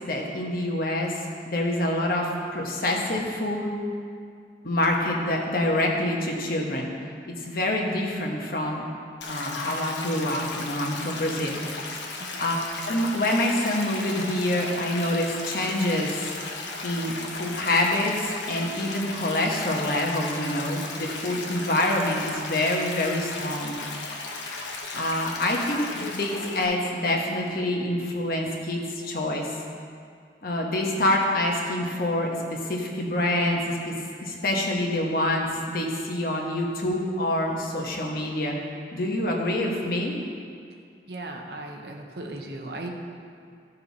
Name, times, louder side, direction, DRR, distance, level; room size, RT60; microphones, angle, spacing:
voice 1, 0.0-1.1 1.5-3.7 4.6-6.9 7.4-8.8 9.3-11.6 12.4-12.6 12.8-16.3 16.8-23.8 24.4-29.5 30.4-33.9 34.2-38.6 38.9-40.2, left 1 dB, 50° left, 0 dB, 1.3 m, -26 dB
Stream, 9.2-26.6, left 3 dB, 80° left, 1.1 m, -36 dB
voice 2, 41.1-42.9, right 2 dB, 65° right, 2 dB, 1.0 m, -37 dB
15.0 x 5.6 x 4.1 m, 2.2 s
head